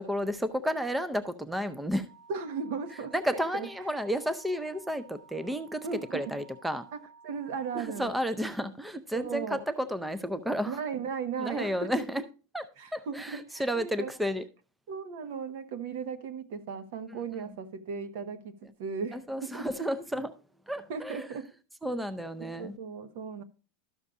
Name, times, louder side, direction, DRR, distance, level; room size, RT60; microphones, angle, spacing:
voice 1, 0.0-2.1 3.1-6.9 7.7-10.8 11.4-12.2 12.5-12.6 12.9-14.4 19.1-20.3 20.7-21.3 21.8-22.8, equal, 5° right, 0.5 m, -32 dB
sound 1, 2.1-8.2, right 4 dB, 55° right, 2.4 m, -55 dB
voice 2, 2.3-3.7 5.8-6.3 6.9-7.0 7.2-8.1 9.1-9.6 10.6-11.9 12.8-14.1 14.9-19.9 20.9-21.5 22.4-23.4, right 6 dB, 70° right, 1.1 m, -37 dB
12.5 x 6.5 x 2.4 m
supercardioid pair, 150°, 0 cm